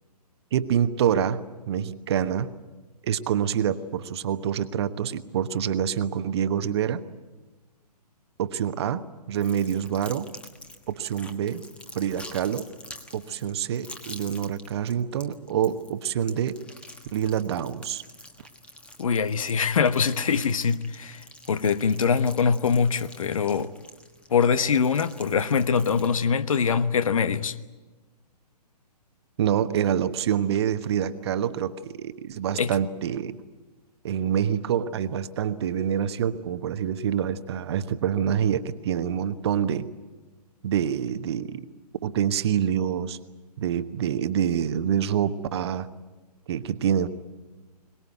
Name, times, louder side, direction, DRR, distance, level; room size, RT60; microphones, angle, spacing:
voice 1, 0.5-2.5 3.0-7.0 8.4-10.3 10.9-11.6 11.9-12.7 13.1-16.6 17.1-18.0 29.4-33.4 34.0-39.9 40.6-41.6 42.0-43.2 43.6-45.9 46.5-47.1, right 9 dB, 40° right, 1.2 m, -26 dB
sound 1, 9.3-26.1, left 1 dB, 5° left, 1.4 m, -47 dB
voice 2, 19.0-23.7 24.3-27.5 32.5-32.7, left 6 dB, 55° left, 1.2 m, -23 dB
23.0 x 20.0 x 9.2 m
figure-of-eight pair, 125°, 21 cm